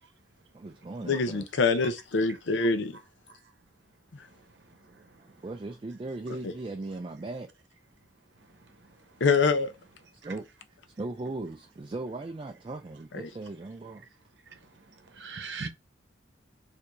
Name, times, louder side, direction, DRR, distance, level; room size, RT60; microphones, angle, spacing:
voice 1, 0.5-1.5 5.0-7.5 10.2-10.5 11.0-14.1, right 2 dB, 25° right, 0.3 m, -38 dB
voice 2, 1.0-2.9 9.2-9.7, left 4 dB, 75° left, 0.6 m, -24 dB
voice 3, 14.5-15.7, right 4 dB, 70° right, 0.8 m, -40 dB
4.6 x 2.7 x 2.5 m
head